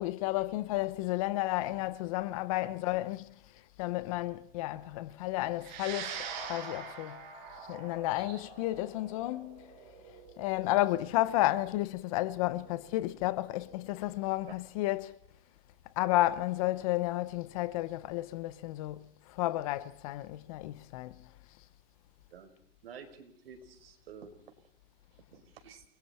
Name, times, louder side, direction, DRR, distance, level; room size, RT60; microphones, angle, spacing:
voice 1, 0.0-3.3 3.8-6.2 6.5-7.2 7.7-9.7 10.4-15.2 16.0-21.2, left 16 dB, 35° left, 0.9 m, -32 dB
sound 1, 5.6-14.2, right 6 dB, 50° right, 6.7 m, -45 dB
voice 2, 22.8-24.3 25.3-25.8, right 6 dB, 75° right, 5.2 m, -50 dB
29.5 x 21.5 x 4.4 m
supercardioid pair, 165°, 30 cm